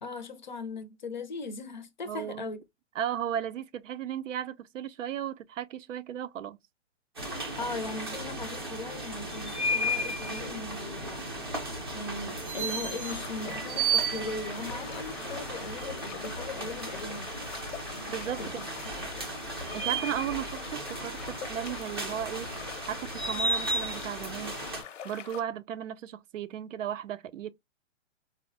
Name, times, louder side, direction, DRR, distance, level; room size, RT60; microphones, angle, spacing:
voice 1, 0.0-2.6 7.6-11.3 11.9-17.4 17.9-18.1 18.4-18.6 19.0-19.1 19.7-19.8, left 3 dB, 40° left, 0.4 m, -39 dB
voice 2, 2.1-2.6 3.0-6.6 18.1-18.6 19.7-22.5 22.9-24.5 25.0-27.5, right 10 dB, 90° right, 0.6 m, -35 dB
sound 1, 7.2-24.8, right 2 dB, 20° right, 0.5 m, -34 dB
sound 2, 13.0-25.4, left 9 dB, 85° left, 0.7 m, -44 dB
4.4 x 2.0 x 2.5 m
hypercardioid pair, 175°, 37 cm